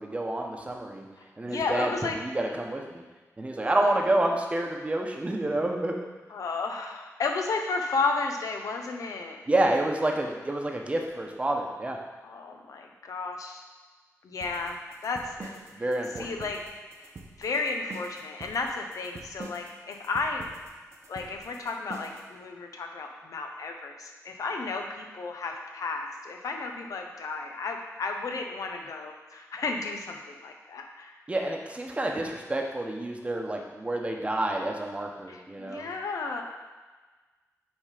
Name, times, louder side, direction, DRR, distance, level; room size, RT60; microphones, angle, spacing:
voice 1, 0.0-1.1 1.4-1.9 2.2-3.0 3.4-6.0 9.5-12.0 15.7-16.3 31.3-35.9, right 1 dB, 20° right, 1 dB, 0.9 m, -28 dB
voice 2, 1.2-2.2 3.8-3.9 6.3-9.4 12.2-13.6 14.2-14.8 15.0-15.8 16.1-16.6 17.0-17.1 17.4-20.5 21.1-31.2 35.3-36.4, left 4 dB, 90° left, 3 dB, 0.8 m, -33 dB
sound 1, 14.4-22.3, right 3 dB, 55° right, 0.9 m, -45 dB
9.0 x 3.6 x 5.0 m, 1.3 s
wide cardioid pair, 125°, 6 cm